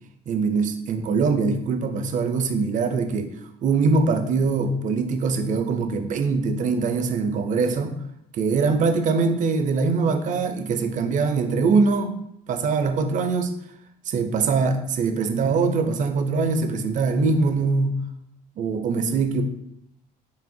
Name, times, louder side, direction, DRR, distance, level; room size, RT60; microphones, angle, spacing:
voice 1, 0.3-3.3 3.6-8.0 8.3-12.1 12.5-13.5 14.1-18.0 18.6-19.4, right 4 dB, 50° right, 7 dB, 0.5 m, -22 dB
4.9 x 3.2 x 2.6 m, 0.78 s
cardioid pair, 110°, 17 cm